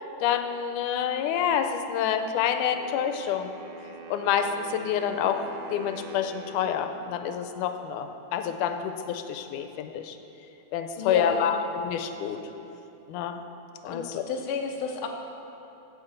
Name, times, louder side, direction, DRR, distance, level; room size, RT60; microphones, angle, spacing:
voice 1, 0.2-3.5 4.1-10.2 10.7-12.4 13.1-13.4 13.8-14.2, left 8 dB, 90° left, 7 dB, 2.1 m, -28 dB
Wind instrument woodwind instrument, 2.7-7.7, right 4 dB, 75° right, 2.2 m, -45 dB
voice 2, 10.9-11.6 13.8-15.1, left 5 dB, 65° left, 2 dB, 1.4 m, -32 dB
8.8 x 7.9 x 8.0 m, 3.0 s
omnidirectional pair, 3.5 m